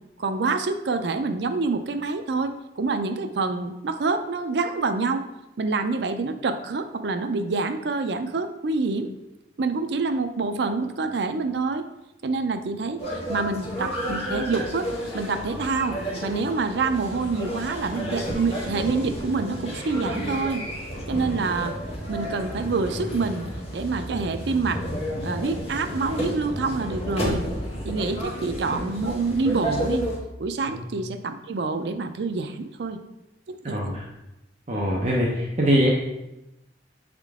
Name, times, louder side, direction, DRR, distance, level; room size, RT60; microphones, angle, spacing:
voice 1, 0.2-5.2 5.6-9.1 9.6-11.9 12.2-13.0 13.3-14.9 15.1-20.6 21.1-21.7 22.1-23.4 23.7-24.8 25.2-27.5 27.9-30.1 30.4-33.0 33.5-34.0, right 3 dB, 70° right, 9 dB, 0.5 m, -27 dB
sound 1, 13.0-30.2, equal, 35° left, 1.3 m, -31 dB
voice 2, 33.6-34.1 34.7-35.9, equal, 40° right, -4 dB, 0.7 m, -23 dB
7.3 x 3.7 x 3.5 m, 0.95 s
head